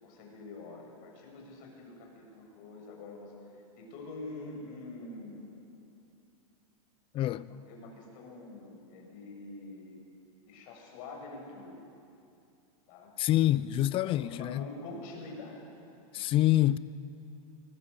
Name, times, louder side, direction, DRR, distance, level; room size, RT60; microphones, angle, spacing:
voice 1, 0.0-3.3 3.8-5.5 7.5-10.0 10.5-11.8 12.9-13.1 14.0-15.6 16.1-16.3, left 2 dB, 45° left, 7.4 m, -45 dB
voice 2, 7.1-7.5 13.2-14.7 16.1-16.8, left 14 dB, 30° left, 0.6 m, -26 dB
23.5 x 20.0 x 8.4 m
supercardioid pair, 140°, 18 cm